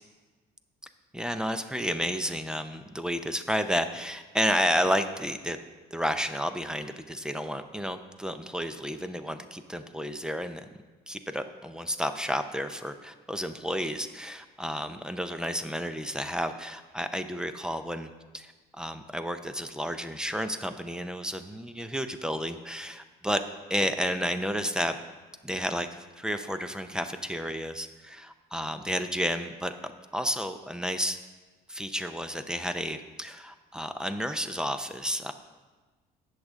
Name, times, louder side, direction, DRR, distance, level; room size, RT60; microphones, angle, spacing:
voice 1, 1.1-5.6 5.9-10.6 11.1-23.4 23.7-25.0 25.4-25.9 26.2-29.7 30.1-31.2 31.7-35.3, equal, 5° right, 9 dB, 0.6 m, -31 dB
18.5 x 6.5 x 3.6 m, 1.3 s
cardioid pair, 110°, 17 cm